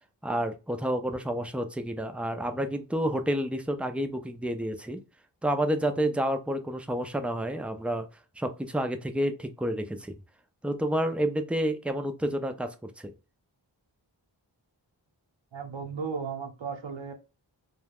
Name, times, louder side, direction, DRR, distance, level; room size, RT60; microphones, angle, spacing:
voice 1, 0.2-5.0 5.4-8.1 8.4-10.1 10.6-13.1, right 1 dB, 5° right, 0.3 m, -29 dB
voice 2, 15.5-17.1, right 5 dB, 80° right, 0.8 m, -35 dB
2.3 x 2.2 x 3.3 m
wide cardioid pair, 60°, 45 cm